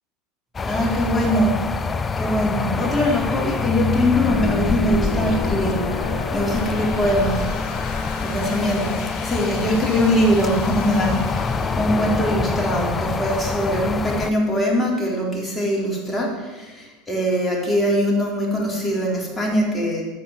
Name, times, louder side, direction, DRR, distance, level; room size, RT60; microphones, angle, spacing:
sound 1, 0.5-14.3, left 4 dB, 25° left, 0.6 m, -26 dB
voice 1, 0.6-1.7 2.2-7.5 8.2-8.9 9.2-20.0, equal, 10° left, -3 dB, 3.8 m, -22 dB
sound 2, 3.1-14.8, left 4 dB, 60° left, 2.6 m, -31 dB
9.3 x 7.2 x 7.3 m, 1.3 s
hypercardioid pair, 85°, 0 cm